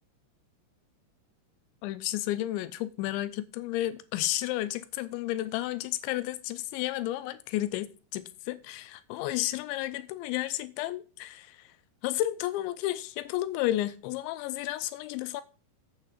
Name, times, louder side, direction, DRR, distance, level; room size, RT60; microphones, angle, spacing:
voice 1, 1.8-11.7 12.0-15.4, left 15 dB, 90° left, 3.0 m, -32 dB
9.1 x 8.1 x 4.1 m
omnidirectional pair, 5.2 m